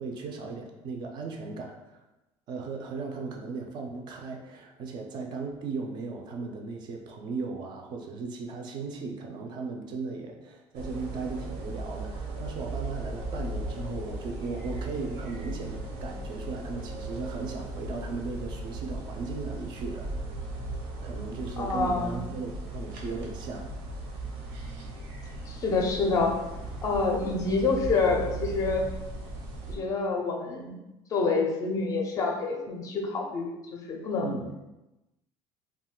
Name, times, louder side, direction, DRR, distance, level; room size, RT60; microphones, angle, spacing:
voice 1, 0.0-2.0 2.5-20.1 21.0-23.7 34.2-34.5, right 4 dB, 40° right, 2 dB, 0.3 m, -37 dB
sound 1, 10.7-29.8, right 2 dB, 90° right, 0.7 m, -37 dB
voice 2, 21.6-22.2 25.5-26.3 26.8-28.8 29.7-30.8 31.1-34.4, left 4 dB, 30° left, 1 dB, 0.4 m, -27 dB
2.4 x 2.2 x 3.6 m, 0.99 s
cardioid pair, 170°, 11 cm